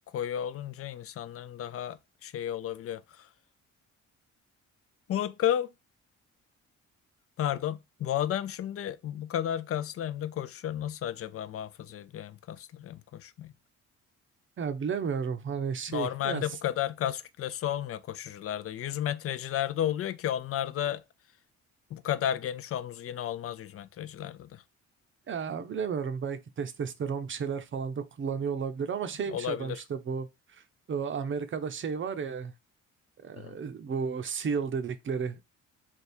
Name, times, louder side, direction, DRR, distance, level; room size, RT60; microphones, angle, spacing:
voice 1, 0.1-3.3 5.1-5.7 7.4-13.5 15.9-21.0 21.9-24.6 29.3-29.8 33.4-33.6, left 11 dB, 50° left, 0.5 m, -33 dB
voice 2, 14.6-16.4 25.3-30.3 30.5-30.6 30.9-32.5 33.2-35.4, right 6 dB, 40° right, 0.6 m, -33 dB
3.5 x 2.4 x 4.3 m
cardioid pair, 90°, 30 cm